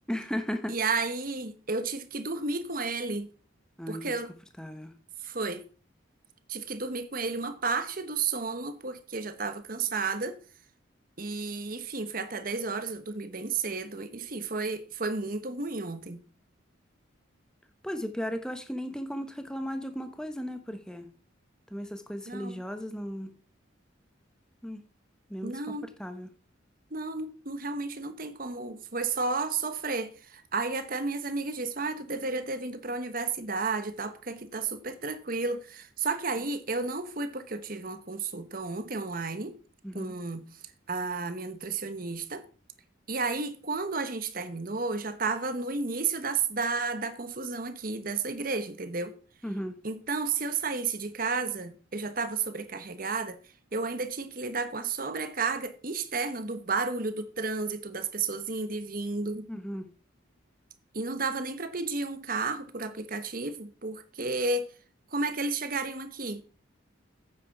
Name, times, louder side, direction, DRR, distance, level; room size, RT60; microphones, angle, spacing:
voice 1, 0.1-0.7 3.8-4.1 4.6-4.9 17.8-21.1 21.7-23.3 24.6-24.8 25.3-26.3 39.8-40.1 49.4-49.8 59.5-59.9, equal, 5° left, 1.0 m, -35 dB
voice 2, 0.7-3.3 3.9-4.3 5.2-5.6 6.5-10.4 11.2-16.2 22.3-22.5 25.4-25.9 26.9-39.6 39.9-40.4 40.9-42.4 43.1-49.1 49.8-53.4 53.7-59.5 60.9-64.7 65.1-66.4, right 4 dB, 45° right, 1.1 m, -32 dB
9.4 x 8.1 x 4.7 m
head